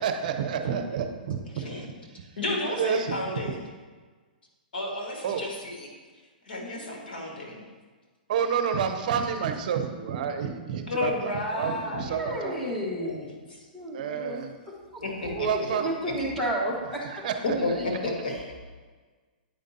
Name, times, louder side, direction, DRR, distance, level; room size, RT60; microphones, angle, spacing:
voice 1, 0.0-1.7 2.2-2.3 2.7-3.5 5.2-5.5 8.3-12.6 13.9-14.5 15.4-15.9 17.0-17.3, right 7 dB, 55° right, 7 dB, 0.7 m, -29 dB
voice 2, 2.4-3.6 4.7-5.9 6.5-7.6 10.9-12.6 13.0-13.1 13.5-13.7 15.0-15.5 17.4-18.3, left 2 dB, 80° left, 1 dB, 1.7 m, -32 dB
voice 3, 12.2-13.3 13.7-15.0 15.7-17.0 17.7-17.9 18.3-18.6, right 1 dB, 5° left, -4 dB, 1.4 m, -32 dB
8.9 x 5.0 x 2.7 m, 1.4 s
hypercardioid pair, 140°, 5 cm